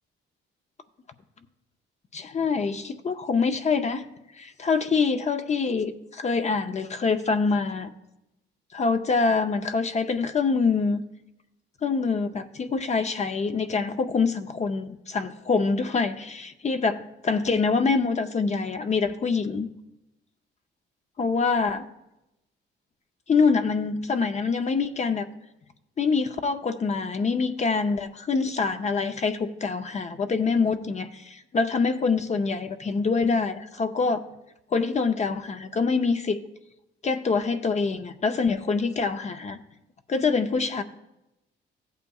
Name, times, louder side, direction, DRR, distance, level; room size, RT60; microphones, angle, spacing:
voice 1, 2.1-4.0 4.3-7.9 8.7-11.0 11.8-19.7 21.2-21.9 23.3-25.3 26.0-34.2 34.7-36.4 37.0-39.6 40.1-40.8, left 4 dB, 35° left, 7 dB, 0.6 m, -25 dB
15.0 x 8.2 x 2.3 m, 0.91 s
cardioid pair, 90°, 20 cm